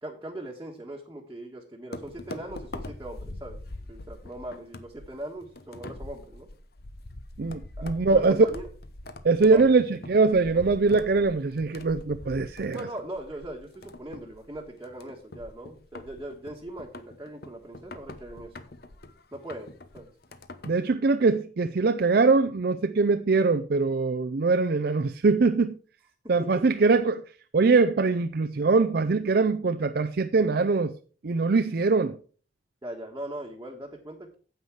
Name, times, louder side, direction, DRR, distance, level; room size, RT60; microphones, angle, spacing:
voice 1, 0.0-3.6 3.9-6.5 7.8-8.7 9.4-9.7 12.7-18.6 19.3-20.1 26.4-26.6 32.8-34.4, right 1 dB, 15° right, 1.4 m, -40 dB
sound 1, 1.9-20.9, left 2 dB, 55° left, 1.0 m, -43 dB
voice 2, 7.4-8.4 9.2-12.8 20.7-25.8 26.3-27.2 27.5-30.9 31.2-32.2, right 4 dB, 55° right, 0.5 m, -22 dB
9.5 x 8.1 x 4.7 m
head